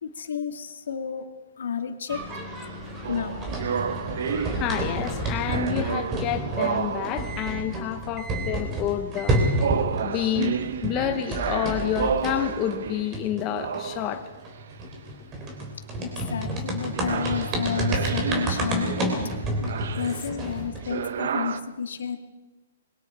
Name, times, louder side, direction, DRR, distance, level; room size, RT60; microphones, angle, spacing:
voice 1, 0.0-1.3 1.6-2.2 3.1-3.4 16.0-19.2 20.0-22.2, left 7 dB, 80° left, 6 dB, 2.5 m, -31 dB
sound 1, 2.1-10.1 10.3-20.9, right 1 dB, 15° right, 3.6 m, -30 dB
sound 2, 3.0-5.2 5.5-7.6 8.3-8.8 9.6-15.0 16.9-21.6, right 7 dB, 55° right, 1.1 m, -31 dB
voice 2, 4.5-9.4 10.0-10.5 10.8-14.2, left 12 dB, 20° left, 8 dB, 0.8 m, -29 dB
27.0 x 22.0 x 4.7 m, 1.2 s
hypercardioid pair, 175°, 0 cm